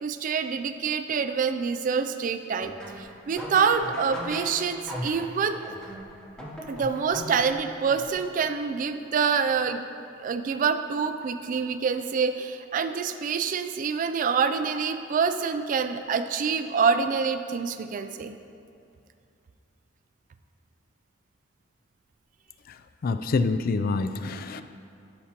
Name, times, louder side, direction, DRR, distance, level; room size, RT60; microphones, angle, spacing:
voice 1, 0.0-5.6 6.7-9.9 10.2-18.3, right 6 dB, 40° right, 9 dB, 0.3 m, -26 dB
sound 1, 2.6-8.5, equal, 5° left, 0.9 m, -39 dB
voice 2, 22.7-24.6, left 4 dB, 45° left, 10 dB, 0.3 m, -27 dB
13.0 x 5.7 x 2.9 m, 2.5 s
head